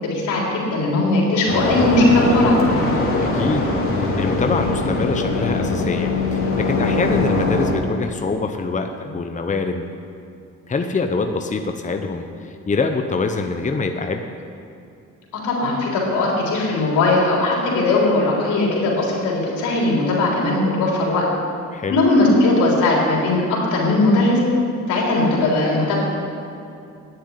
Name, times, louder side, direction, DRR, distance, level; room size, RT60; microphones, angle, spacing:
voice 1, 0.0-2.6 15.3-21.3 21.9-24.4 24.9-26.0, left 2 dB, 90° left, -3 dB, 3.7 m, -19 dB
sound 1, 1.5-7.7, left 2 dB, 45° left, 3.0 m, -21 dB
voice 2, 3.3-9.8 10.7-14.2 21.7-22.1, left 4 dB, 25° left, 5 dB, 0.9 m, -24 dB
10.0 x 7.9 x 9.7 m, 2.6 s
cardioid pair, 90°, 30 cm